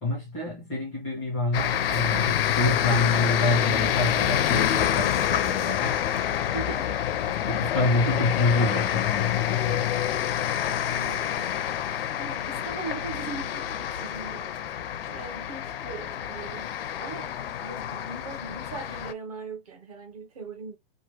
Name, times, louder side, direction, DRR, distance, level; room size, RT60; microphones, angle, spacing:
voice 1, 0.0-6.0 7.3-9.9 15.1-15.2, left 2 dB, ahead, 0.4 m, -27 dB
sound 1, 1.5-19.1, left 10 dB, 65° left, 0.5 m, -27 dB
voice 2, 6.5-6.9 10.8-11.7 12.1-14.5 14.8-17.3 17.6-20.8, right 4 dB, 35° right, 0.8 m, -40 dB
3.0 x 2.2 x 2.8 m
hypercardioid pair, 180°, 32 cm